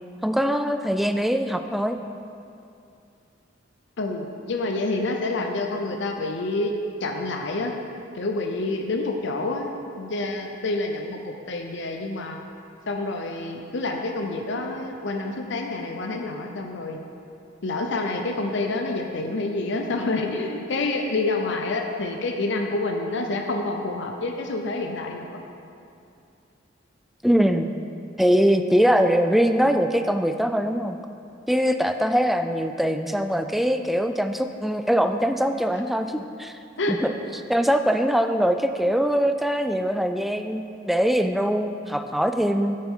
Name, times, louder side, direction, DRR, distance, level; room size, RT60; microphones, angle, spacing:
voice 1, 0.2-2.0 27.2-27.7 28.2-31.0 31.5-36.6 36.9-37.1 37.5-42.8, equal, ahead, 7 dB, 0.3 m, -22 dB
voice 2, 4.0-6.7 7.0-7.7 8.1-9.7 10.0-12.4 12.9-17.0 17.6-25.4 36.8-37.0, left 2 dB, 70° left, 3 dB, 0.7 m, -28 dB
10.5 x 7.5 x 3.7 m, 2.6 s
head